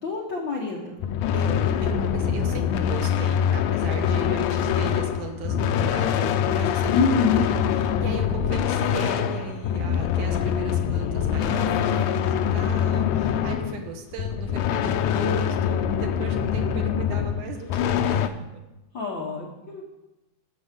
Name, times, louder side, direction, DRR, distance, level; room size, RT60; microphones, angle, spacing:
voice 1, 0.0-1.0 6.9-7.5 18.9-19.8, left 4 dB, 60° left, -2 dB, 1.2 m, -26 dB
sound 1, 1.0-18.3, left 8 dB, 85° left, 2.0 m, -24 dB
voice 2, 1.3-18.6, right 6 dB, 80° right, 3 dB, 2.5 m, -37 dB
10.0 x 7.1 x 5.1 m, 0.98 s
omnidirectional pair, 3.5 m